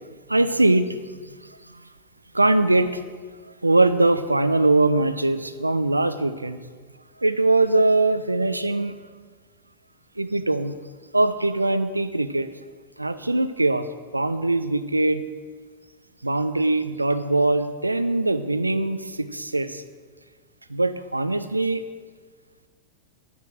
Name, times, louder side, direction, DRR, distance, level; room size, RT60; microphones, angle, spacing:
voice 1, 0.3-1.0 1.3-1.4 2.3-3.0 3.6-6.6 7.2-9.0 10.2-10.8 11.1-12.5 13.0-13.9 14.1-15.2 16.2-19.8 20.7-21.8, right 2 dB, 85° right, 12 dB, 0.6 m, -21 dB
11.0 x 9.7 x 6.4 m, 1.5 s
figure-of-eight pair, 90°, 0 cm